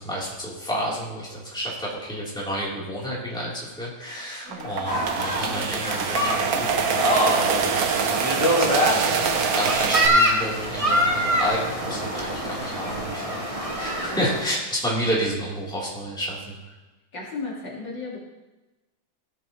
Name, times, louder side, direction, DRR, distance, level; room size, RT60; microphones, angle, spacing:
voice 1, 0.0-16.7, equal, ahead, -7 dB, 3.1 m, -31 dB
sound 1, 4.5-10.1, right 6 dB, 60° right, 1.0 m, -25 dB
sound 2, 4.9-14.4, equal, 15° right, 1.6 m, -25 dB
voice 2, 17.1-18.2, left 3 dB, 60° left, -5 dB, 2.6 m, -35 dB
17.0 x 8.0 x 3.0 m, 1.1 s
omnidirectional pair, 2.3 m